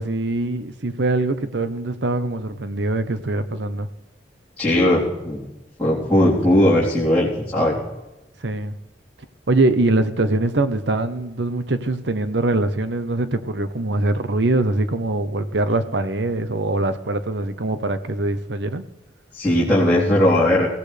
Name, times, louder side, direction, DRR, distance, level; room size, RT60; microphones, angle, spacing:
voice 1, 0.0-3.9 8.4-8.7 9.5-18.8, right 2 dB, 80° right, 1.0 m, -23 dB
voice 2, 4.6-5.4 5.8-7.8 19.3-20.7, left 1 dB, 10° left, 3.8 m, -18 dB
23.5 x 16.5 x 3.4 m
head